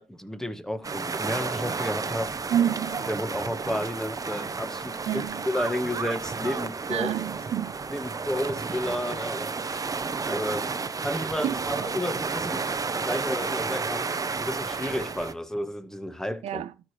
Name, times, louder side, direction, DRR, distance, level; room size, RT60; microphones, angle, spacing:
voice 1, 0.0-2.4 3.1-7.1 7.9-9.8 10.3-10.7 11.0-12.7 13.0-14.1 14.4-16.6, left 1 dB, 5° left, 1.1 m, -32 dB
sound 1, 0.8-15.3, right 4 dB, 30° right, 0.7 m, -32 dB
voice 2, 2.5-3.1 5.1-5.4 6.9-7.8 11.4-11.9 16.4-16.7, right 10 dB, 60° right, 0.4 m, -28 dB
12.5 x 5.0 x 3.1 m
cardioid pair, 70°, 12 cm